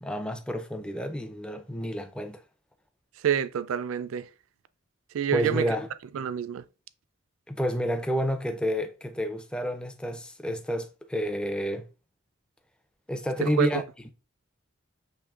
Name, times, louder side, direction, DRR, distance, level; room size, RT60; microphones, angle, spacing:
voice 1, 0.0-2.4 5.3-5.9 7.5-11.9 13.1-13.8, equal, 5° left, 0.4 m, -30 dB
voice 2, 3.2-4.3 5.1-5.7 6.1-6.6 13.4-13.8, right 9 dB, 80° right, 0.3 m, -27 dB
7.3 x 2.9 x 2.4 m
head